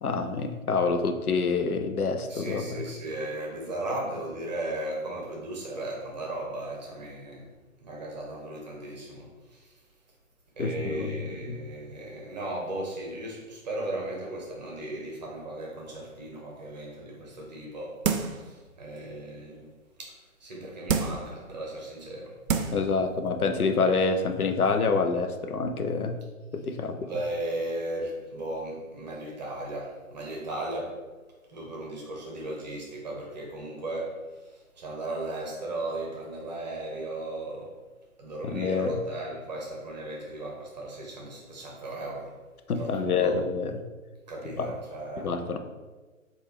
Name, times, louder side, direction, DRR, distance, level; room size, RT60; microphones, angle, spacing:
voice 1, 0.0-2.7 10.6-11.1 11.5-11.6 22.7-26.2 26.5-27.1 38.4-39.0 42.7-43.7 44.6-44.7 45.2-45.6, left 4 dB, 90° left, 7 dB, 0.5 m, -27 dB
voice 2, 2.3-7.5 7.8-9.8 10.6-19.7 20.0-20.1 20.4-22.3 27.1-31.0 31.5-37.7 38.2-42.3 42.8-43.4 44.3-45.3, right 1 dB, 30° right, -2 dB, 0.8 m, -36 dB
sound 1, 18.0-18.5 19.0-19.1 20.9-21.3 22.0-22.1 22.5-22.9 23.3-23.4, right 6 dB, 75° right, 0.5 m, -27 dB
3.3 x 2.4 x 3.6 m, 1.3 s
figure-of-eight pair, 135°, 43 cm